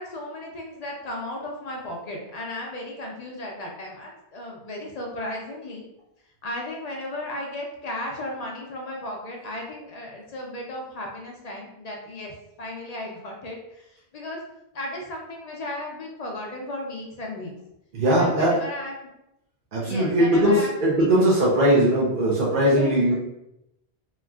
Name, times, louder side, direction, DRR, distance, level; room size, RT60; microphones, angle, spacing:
voice 1, 0.0-5.9 6.4-14.4 14.7-17.5 18.0-19.1 19.8-21.2 22.5-23.1, left 1 dB, 60° left, -1 dB, 0.4 m, -35 dB
voice 2, 17.9-18.5 19.7-23.1, right 1 dB, 55° right, -5 dB, 0.7 m, -20 dB
2.9 x 2.4 x 2.3 m, 0.86 s
omnidirectional pair, 1.2 m